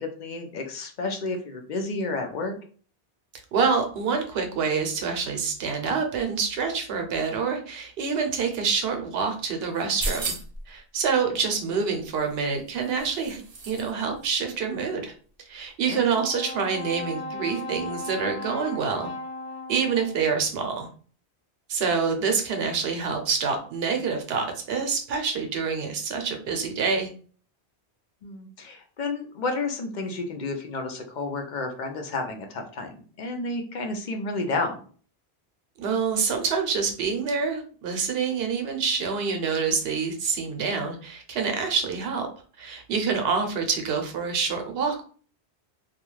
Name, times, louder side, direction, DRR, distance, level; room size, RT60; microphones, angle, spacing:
voice 1, 0.0-2.6 15.9-16.0 16.3-16.4 28.2-32.9 33.2-34.8, left 3 dB, 55° left, 4 dB, 0.6 m, -31 dB
voice 2, 3.5-10.3 10.7-15.1 15.5-19.1 19.7-20.9 21.7-27.1 35.8-42.3 42.6-45.0, right 5 dB, 70° right, 4 dB, 0.8 m, -27 dB
Glass in Plastic Bag, 9.7-10.7 12.2-13.9 14.2-14.3, right 2 dB, 50° right, 0.5 m, -34 dB
Brass instrument, 16.0-20.4, left 1 dB, 75° left, 1.0 m, -37 dB
2.3 x 2.2 x 3.0 m, 0.42 s
omnidirectional pair, 1.1 m